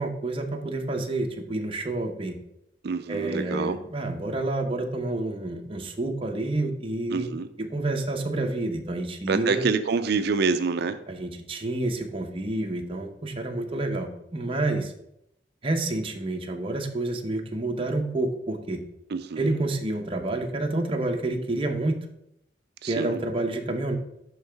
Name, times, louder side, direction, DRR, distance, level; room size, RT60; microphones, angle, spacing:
voice 1, 0.0-2.4 3.1-7.3 7.6-9.6 11.1-14.9 15.6-18.8 19.4-22.0 22.9-24.0, right 2 dB, 30° right, 3 dB, 0.8 m, -29 dB
voice 2, 2.8-3.8 7.1-7.5 9.3-11.0 19.1-19.5 22.8-23.2, right 4 dB, 60° right, 10 dB, 0.4 m, -26 dB
10.5 x 3.9 x 3.4 m, 0.79 s
head